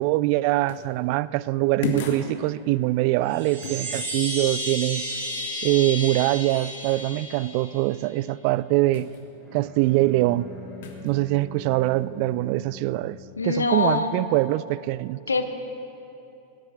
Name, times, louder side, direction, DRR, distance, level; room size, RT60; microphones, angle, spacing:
voice 1, 0.0-5.1 5.6-9.1 9.5-10.5 11.0-13.2 13.4-15.2, right 17 dB, 45° right, 0.3 m, -23 dB
sound 1, 0.7-0.9 1.8-2.3 3.6-3.9 8.9-9.2 10.8-11.1, left 5 dB, 55° left, 1.7 m, -31 dB
Chime, 3.2-7.9, equal, 60° right, 4.1 m, -32 dB
Bowed string instrument, 9.4-13.4, left 3 dB, 5° right, 3.9 m, -44 dB
voice 2, 13.4-14.1 15.3-15.4, left 4 dB, 75° left, 1.0 m, -23 dB
18.0 x 10.0 x 6.7 m
figure-of-eight pair, 90°, 0 cm